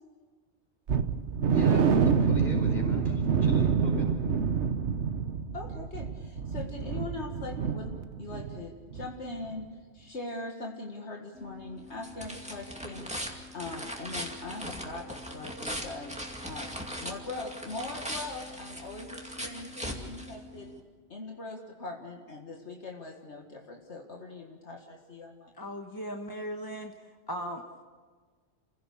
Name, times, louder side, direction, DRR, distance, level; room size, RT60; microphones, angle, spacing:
sound 1, 0.9-8.6 8.9-9.1 9.5-9.6, right 6 dB, 75° right, 1.3 m, -27 dB
voice 1, 1.5-4.2, left 2 dB, 40° left, 1 dB, 5.3 m, -40 dB
voice 2, 5.5-13.1 13.5-16.7 17.0-20.7 21.1-25.5, left 3 dB, 70° left, 1 dB, 2.1 m, -41 dB
sound 2, 11.4-20.8, equal, 5° right, 2.3 m, -40 dB
voice 3, 25.6-26.9 27.3-27.8, equal, 20° left, 4 dB, 1.1 m, -37 dB
28.5 x 16.5 x 7.0 m, 1.5 s
omnidirectional pair, 1.2 m